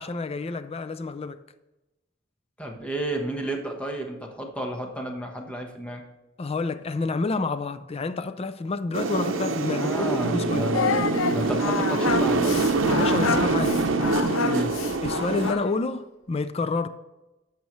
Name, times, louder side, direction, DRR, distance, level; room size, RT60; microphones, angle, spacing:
voice 1, 0.0-1.4 6.4-10.7 12.8-13.8 15.0-16.9, left 3 dB, 30° left, 0.4 m, -29 dB
voice 2, 2.6-6.0 9.7-10.9 11.3-12.5 14.4-14.7, right 1 dB, 5° left, 1.2 m, -31 dB
sound 1, 8.9-15.5, right 3 dB, 80° right, 0.7 m, -25 dB
Singing, 10.7-15.8, left 6 dB, 85° left, 0.5 m, -29 dB
11.0 x 7.5 x 3.2 m
head